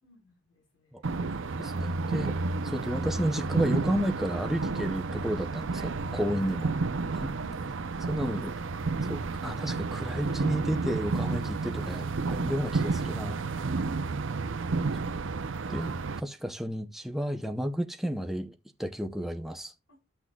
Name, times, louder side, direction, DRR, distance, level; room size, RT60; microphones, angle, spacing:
voice 1, 0.0-1.2 6.4-6.9 7.2-7.8 8.2-9.2 19.9-20.0, equal, 75° left, 4.4 m, -55 dB
sound 1, 1.0-16.2, right 3 dB, 75° right, 0.6 m, -31 dB
voice 2, 1.6-2.3 2.6-6.7 8.1-8.5 9.1-9.2 9.4-13.4 15.7-18.5 18.8-19.7, equal, ahead, 0.6 m, -32 dB
13.5 x 6.1 x 2.3 m
head